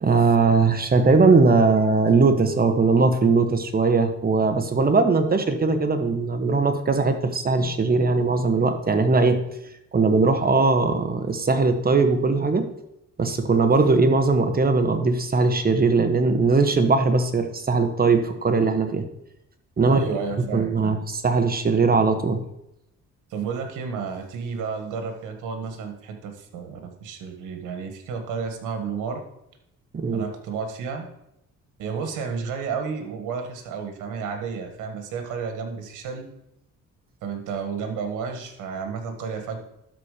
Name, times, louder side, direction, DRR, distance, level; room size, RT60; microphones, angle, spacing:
voice 1, 0.0-9.4 9.9-12.7 13.2-19.1 19.8-20.0 20.5-22.4 29.9-30.2, right 4 dB, 30° right, 7 dB, 1.2 m, -20 dB
voice 2, 19.9-20.9 23.3-29.2 30.1-31.1 31.8-36.3 37.2-39.6, right 5 dB, 85° right, 5 dB, 1.5 m, -31 dB
12.0 x 4.4 x 5.0 m, 0.83 s
cardioid pair, 90°, 30 cm